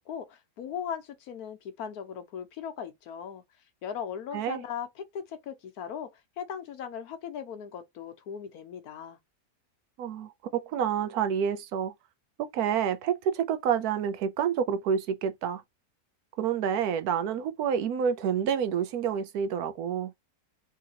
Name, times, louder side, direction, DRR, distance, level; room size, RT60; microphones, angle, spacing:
voice 1, 0.0-3.4 3.8-9.2, left 8 dB, 85° left, 1.3 m, -38 dB
voice 2, 10.0-11.9 12.4-15.6 16.4-20.1, right 8 dB, 85° right, 1.2 m, -28 dB
3.8 x 2.8 x 2.8 m
omnidirectional pair, 1.6 m